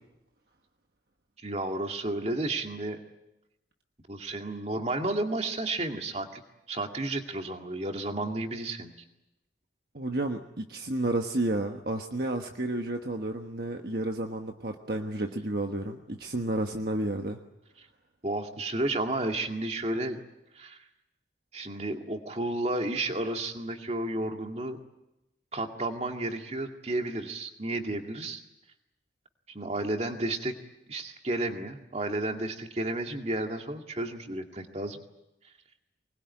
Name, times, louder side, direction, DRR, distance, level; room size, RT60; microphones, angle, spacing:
voice 1, 1.4-3.0 4.1-6.4 6.7-8.9 18.2-20.2 20.6-20.8 21.5-24.8 25.5-28.4 29.5-30.6 30.9-35.0, right 2 dB, 35° right, 4 dB, 2.2 m, -32 dB
voice 2, 9.9-17.4, right 1 dB, 55° right, 4 dB, 1.3 m, -31 dB
24.5 x 21.0 x 9.6 m, 0.92 s
head